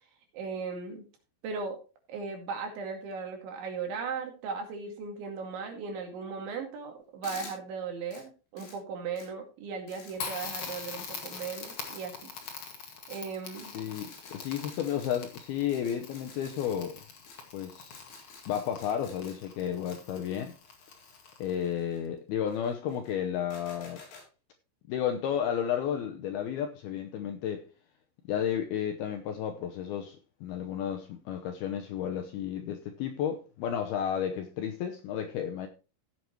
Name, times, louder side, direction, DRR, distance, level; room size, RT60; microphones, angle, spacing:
voice 1, 0.3-1.0 1.4-1.8 2.1-12.3 13.1-13.7, right 5 dB, 75° right, 4.6 m, -37 dB
sound 1, 7.2-7.5 8.1-8.2 8.6-8.8 9.2-9.3 9.9-10.1 10.6-12.0 12.4-12.5 13.1-13.2 13.6-13.7 13.9-15.1 15.7-16.7 17.3-17.4 17.9-19.3 19.9-20.0 20.6-22.0 22.5-23.1 23.5-24.2, left 4 dB, 60° left, 5.8 m, -50 dB
Crackle, 10.1-21.7, left 5 dB, 45° left, 2.1 m, -44 dB
voice 2, 13.7-17.0 17.5-18.0 18.5-20.5 21.4-24.0 24.9-27.7 28.3-35.7, left 9 dB, 75° left, 2.3 m, -32 dB
16.0 x 7.8 x 3.1 m
omnidirectional pair, 5.4 m